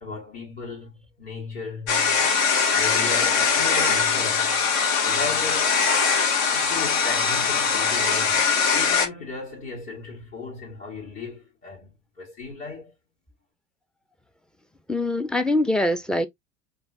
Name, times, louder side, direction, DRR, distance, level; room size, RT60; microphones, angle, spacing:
voice 1, 0.0-2.2 2.7-4.6 5.0-5.8 6.5-12.9, left 4 dB, 20° left, 1.9 m, -36 dB
sound 1, 1.9-9.1, left 5 dB, 50° left, 1.2 m, -21 dB
voice 2, 14.9-16.3, left 1 dB, ahead, 0.5 m, -23 dB
5.2 x 2.6 x 2.8 m
figure-of-eight pair, 75°, 38 cm